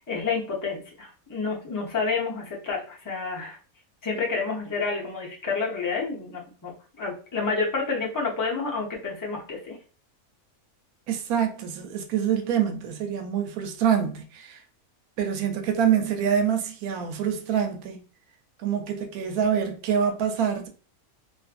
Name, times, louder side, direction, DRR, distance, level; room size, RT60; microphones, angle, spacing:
voice 1, 0.0-3.6 4.0-9.8, left 4 dB, 30° left, 0.3 m, -29 dB
voice 2, 11.1-14.6 15.2-18.0 18.6-20.7, right 8 dB, 90° right, 1.1 m, -26 dB
2.6 x 2.5 x 2.4 m
omnidirectional pair, 1.5 m